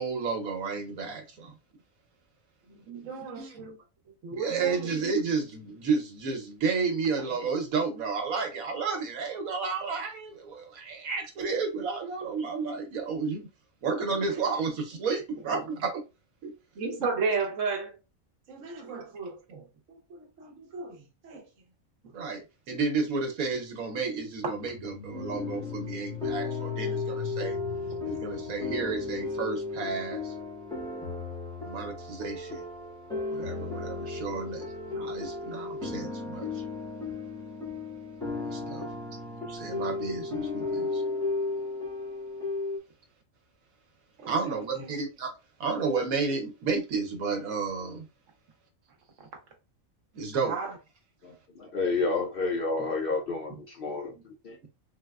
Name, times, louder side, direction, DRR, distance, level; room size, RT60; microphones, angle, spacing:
voice 1, 0.0-1.5 2.9-3.6 4.3-13.5 13.8-16.0 16.4-16.5 18.8-18.9 22.1-27.6 28.0-30.3 31.6-32.7 33.3-36.6 38.4-38.9 39.5-41.0 44.3-45.3 45.6-48.1 50.1-50.5, right 4 dB, 90° right, 1.3 m, -32 dB
voice 2, 2.7-3.8 4.2-4.9 14.3-14.4 15.5-15.6 16.7-18.0 18.5-21.5 24.4-24.5 44.2-44.9 49.2-49.3 50.4-50.8, right 4 dB, 65° right, 1.1 m, -34 dB
sound 1, 24.4-29.3, left 11 dB, 80° left, 1.0 m, -40 dB
sound 2, 25.1-42.8, left 3 dB, 5° left, 0.5 m, -35 dB
voice 3, 51.2-54.7, left 3 dB, 55° left, 0.6 m, -30 dB
3.8 x 2.1 x 2.3 m
omnidirectional pair, 1.4 m